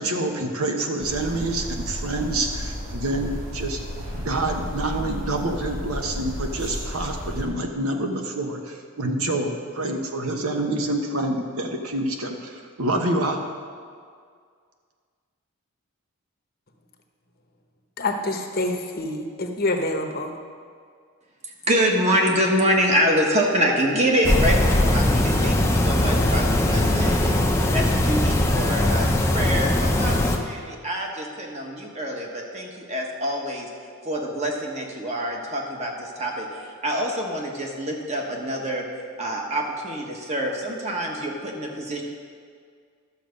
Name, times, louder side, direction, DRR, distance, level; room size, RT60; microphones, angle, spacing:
voice 1, 0.0-3.8 4.1-13.4, right 2 dB, 75° right, 3 dB, 1.1 m, -27 dB
sound 1, 1.0-7.4, equal, 60° right, 3.1 m, -33 dB
voice 2, 18.0-20.3, left 2 dB, 40° left, 4 dB, 0.8 m, -26 dB
voice 3, 21.7-27.4 27.7-33.7 34.0-38.8 39.2-42.0, equal, 30° right, 0 dB, 1.3 m, -25 dB
sound 2, 24.2-30.4, left 1 dB, 10° left, 0.6 m, -20 dB
12.0 x 6.9 x 5.2 m, 2.1 s
head